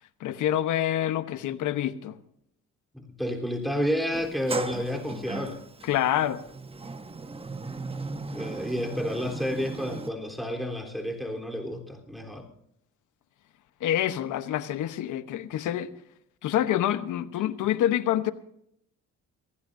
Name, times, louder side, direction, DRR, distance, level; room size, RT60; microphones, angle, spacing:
voice 1, 0.2-2.2 5.8-6.4 13.8-15.9 16.4-18.3, left 11 dB, 80° left, 1.1 m, -27 dB
voice 2, 2.9-5.6 8.3-12.5, equal, ahead, 3.6 m, -30 dB
Sliding door, 4.1-10.1, right 3 dB, 20° right, 1.0 m, -37 dB
24.0 x 16.0 x 2.7 m
cardioid pair, 90°, 30 cm